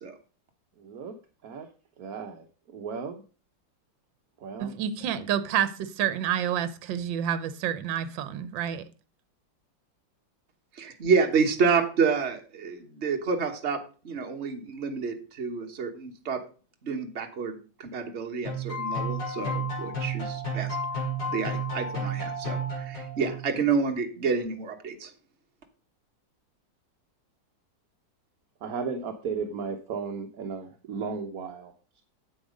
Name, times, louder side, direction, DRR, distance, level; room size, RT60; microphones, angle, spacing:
voice 1, 0.8-1.1 1.4-1.7 2.0-3.2 4.4-4.7 28.6-32.0, right 5 dB, 55° right, 1.3 m, -35 dB
voice 2, 4.6-8.8, right 9 dB, 75° right, 1.5 m, -29 dB
voice 3, 10.7-16.4 16.8-20.8 21.3-25.1, right 5 dB, 40° right, 1.5 m, -29 dB
sound 1, 18.4-23.6, right 1 dB, 65° left, 5.2 m, -32 dB
8.7 x 8.1 x 5.1 m
omnidirectional pair, 2.1 m